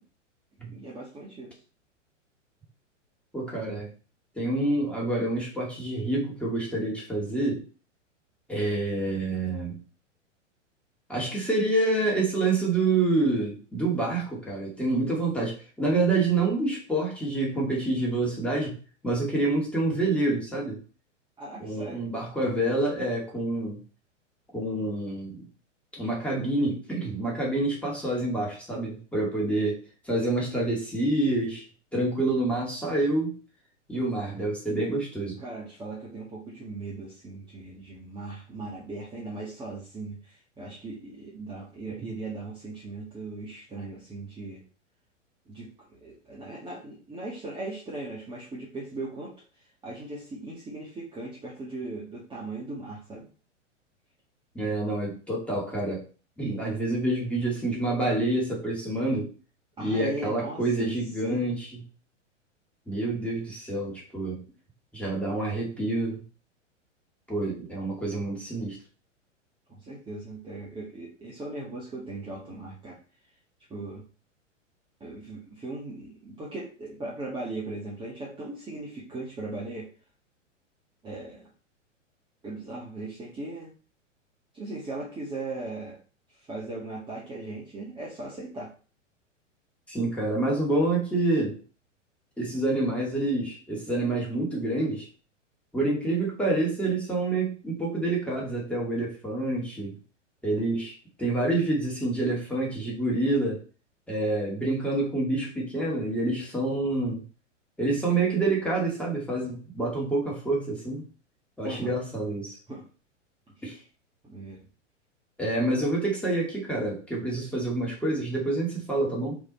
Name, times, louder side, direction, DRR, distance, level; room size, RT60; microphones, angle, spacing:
voice 1, 0.6-1.6 21.4-22.0 35.4-44.6 45.5-53.3 59.8-60.9 61.2-61.5 69.7-73.0 73.7-74.0 75.0-79.9 81.0-81.5 82.4-83.7 84.5-86.0 86.3-88.7 111.6-112.0 112.7-112.9 113.6-113.8 114.2-114.6, right 2 dB, 15° right, -5 dB, 1.6 m, -38 dB
voice 2, 3.3-3.9 4.4-7.6 8.5-9.8 11.1-18.8 19.0-20.8 21.6-23.8 24.5-25.4 25.9-29.8 30.0-31.6 31.9-33.4 33.9-35.4 54.5-56.0 56.4-59.3 59.8-61.8 62.9-64.4 64.9-66.2 67.3-68.8 89.9-91.6 92.4-95.1 95.7-99.9 100.4-103.6 104.1-107.2 107.8-111.0 111.6-112.6 113.6-113.8 115.4-119.4, right 2 dB, 5° left, -4 dB, 2.2 m, -27 dB
5.2 x 4.8 x 4.3 m, 0.37 s
figure-of-eight pair, 105°, 38 cm